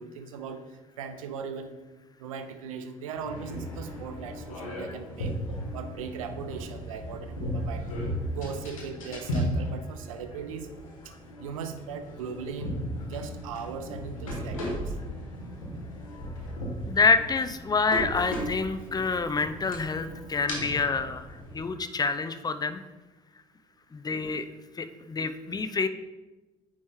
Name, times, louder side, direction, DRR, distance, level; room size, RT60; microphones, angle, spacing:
voice 1, 0.0-1.7 2.2-5.4 5.7-7.8 8.3-10.7 11.0-11.1 11.4-12.8 13.1-14.9, right 6 dB, 80° right, 9 dB, 0.5 m, -38 dB
sound 1, 3.2-21.6, equal, 80° left, 1.3 m, -36 dB
voice 2, 16.9-22.8 23.9-24.5 24.8-25.9, left 4 dB, 25° left, 11 dB, 0.5 m, -27 dB
9.2 x 3.2 x 3.6 m, 1.1 s
figure-of-eight pair, 50°, 17 cm